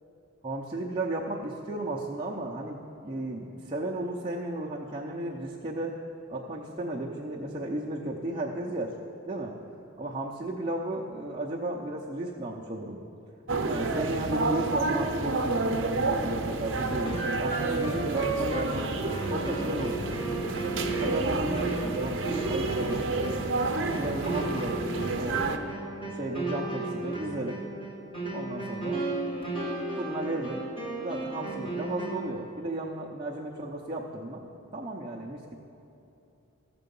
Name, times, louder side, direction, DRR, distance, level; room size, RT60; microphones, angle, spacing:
voice 1, 0.4-6.0 6.3-8.9 9.3-9.6 10.0-13.0 13.7-18.9 19.3-20.0 21.0-23.3 23.7-24.8 25.2-25.4 26.0-27.6 28.3-29.0 30.0-30.6 31.0-34.5 34.7-35.6, right 1 dB, 20° right, -4 dB, 0.7 m, -34 dB
sound 1, 13.5-25.6, right 2 dB, 60° right, 0.8 m, -30 dB
sound 2, 17.0-32.4, right 2 dB, 25° left, 1.9 m, -34 dB
14.5 x 6.8 x 5.4 m, 2.9 s
head